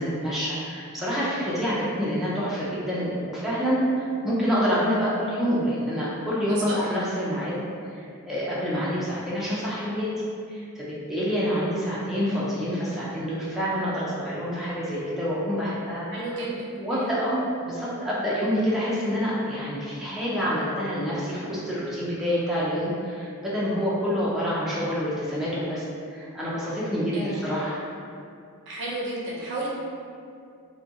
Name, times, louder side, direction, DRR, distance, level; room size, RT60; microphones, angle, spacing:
voice 1, 0.0-7.6 7.9-10.1 10.5-16.4 16.8-27.8, equal, ahead, -9 dB, 0.4 m, -27 dB
voice 2, 16.1-17.1 27.1-27.4 28.7-29.7, right 1 dB, 55° right, -5 dB, 0.5 m, -32 dB
2.5 x 2.2 x 2.6 m, 2.4 s
head